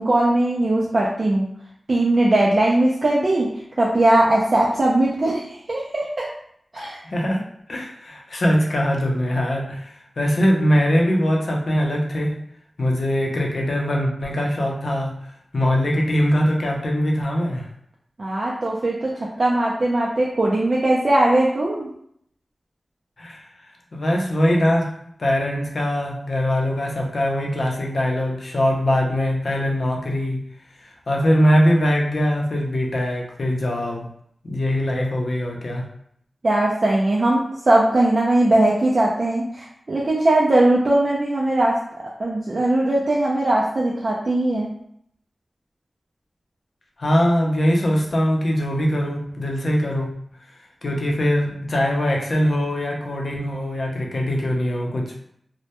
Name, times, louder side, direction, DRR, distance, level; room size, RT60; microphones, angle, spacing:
voice 1, 0.0-1.5 1.9-3.5 3.8-6.3 6.7-7.0 18.2-19.1 19.4-21.9 36.4-41.8 42.2-44.7, right 1 dB, 50° right, -4 dB, 0.3 m, -19 dB
voice 2, 6.8-7.4 7.7-12.4 12.8-15.1 15.5-17.7 23.2-23.5 23.9-24.9 25.2-30.5 30.8-34.1 34.4-35.9 47.0-50.1 50.8-55.2, equal, 60° left, 0 dB, 0.5 m, -22 dB
2.1 x 2.0 x 2.8 m, 0.69 s
wide cardioid pair, 90°, 0 cm